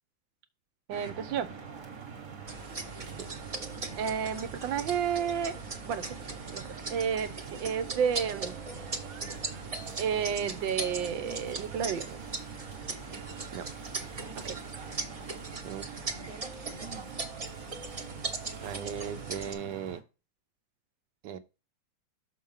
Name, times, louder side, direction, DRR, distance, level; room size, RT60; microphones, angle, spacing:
sound 1, 0.9-20.0, right 5 dB, 50° right, 1.7 m, -44 dB
voice 1, 0.9-1.5 4.0-5.5 5.8-6.0 6.5-7.3 7.6-8.6 10.0-12.2 14.4-14.5, right 7 dB, 85° right, 1.6 m, -31 dB
sound 2, 2.5-19.5, right 3 dB, 30° right, 0.6 m, -40 dB
voice 2, 18.6-20.0 21.2-21.4, right 8 dB, 65° right, 1.4 m, -37 dB
6.6 x 4.4 x 5.6 m
omnidirectional pair, 2.0 m